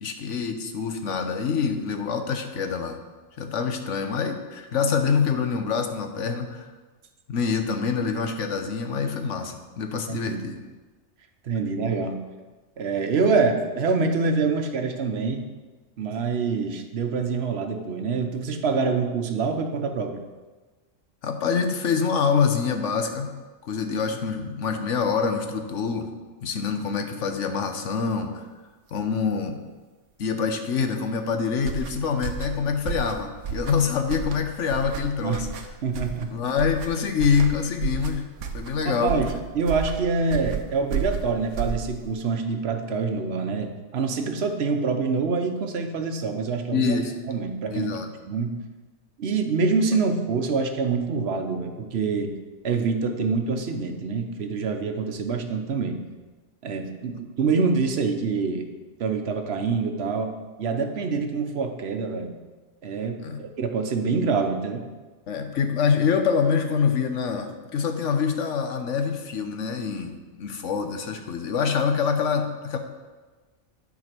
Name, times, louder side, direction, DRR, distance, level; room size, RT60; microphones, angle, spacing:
voice 1, 0.0-3.0 3.4-6.7 7.3-10.6 21.2-23.3 23.6-26.1 26.4-28.5 28.9-29.6 30.2-35.5 36.3-38.3 38.5-39.2 46.7-47.2 47.7-48.1 63.2-63.4 65.3-72.8, left 6 dB, 85° left, 6 dB, 1.2 m, -25 dB
voice 2, 10.1-10.4 11.5-12.2 12.8-15.4 16.0-20.2 35.2-35.5 35.8-36.4 38.8-47.0 47.3-48.0 48.3-48.6 49.2-52.3 52.6-56.0 56.6-58.7 59.0-60.3 60.6-62.4 62.8-64.8, right 4 dB, 60° right, 5 dB, 1.1 m, -26 dB
sound 1, 31.6-42.2, right 6 dB, 90° right, 1.1 m, -32 dB
9.6 x 5.0 x 6.0 m, 1.3 s
omnidirectional pair, 1.2 m